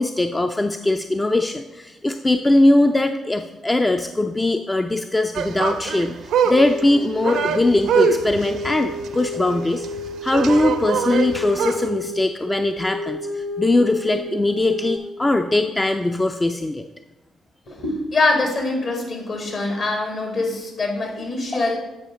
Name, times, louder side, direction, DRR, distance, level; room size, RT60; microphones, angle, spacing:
voice 1, 0.0-9.9 10.2-16.8, left 2 dB, 20° left, 6 dB, 0.4 m, -20 dB
sound 1, 5.3-11.9, right 6 dB, 65° right, 0.5 m, -24 dB
sound 2, 6.5-15.0, left 1 dB, 40° left, 1.8 m, -31 dB
voice 2, 17.7-21.8, left 2 dB, 55° left, 1 dB, 2.0 m, -23 dB
8.8 x 4.9 x 3.6 m, 1.1 s
hypercardioid pair, 40°, 0 cm